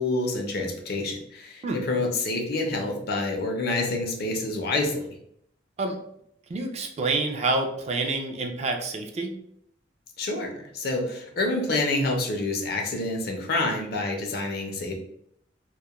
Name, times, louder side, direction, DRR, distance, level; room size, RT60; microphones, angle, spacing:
voice 1, 0.0-5.0 10.2-14.9, left 2 dB, 55° left, 2 dB, 0.5 m, -27 dB
voice 2, 6.5-9.3, right 3 dB, 35° right, 3 dB, 0.3 m, -27 dB
2.2 x 2.1 x 2.8 m, 0.72 s
head